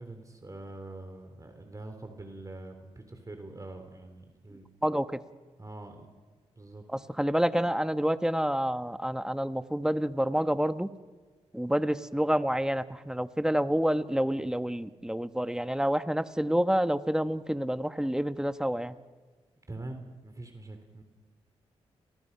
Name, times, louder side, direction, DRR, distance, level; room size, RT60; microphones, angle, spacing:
voice 1, 0.0-4.7 5.6-6.1 6.6-6.8 19.7-21.0, right 2 dB, 30° right, 6 dB, 3.8 m, -44 dB
voice 2, 4.8-5.2 7.2-10.9 11.5-18.9, equal, 5° right, 10 dB, 1.4 m, -28 dB
29.5 x 20.5 x 5.8 m, 1.4 s
supercardioid pair, 45°, 12 cm